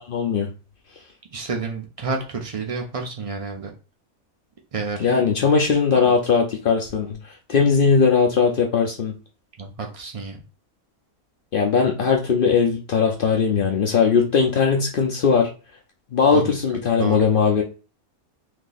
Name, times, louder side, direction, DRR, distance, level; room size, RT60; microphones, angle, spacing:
voice 1, 0.1-0.5 5.0-7.2 7.5-9.1 11.5-15.5 16.1-17.6, left 5 dB, 60° left, 1 dB, 0.5 m, -19 dB
voice 2, 1.3-3.7 4.7-5.1 5.9-6.2 9.6-10.4 16.3-17.2, right 4 dB, 55° right, 1 dB, 0.3 m, -30 dB
2.8 x 2.7 x 3.9 m, 0.34 s
omnidirectional pair, 1.5 m